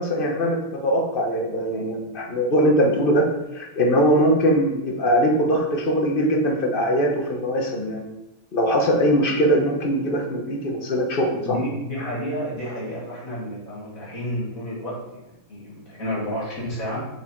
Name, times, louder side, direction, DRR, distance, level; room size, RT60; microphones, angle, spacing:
voice 1, 0.0-3.3 3.5-8.1 8.5-11.6, equal, 40° left, 0 dB, 1.3 m, -21 dB
voice 2, 11.4-17.1, equal, 65° left, -6 dB, 3.5 m, -30 dB
6.8 x 4.7 x 4.6 m, 0.93 s
omnidirectional pair, 1.5 m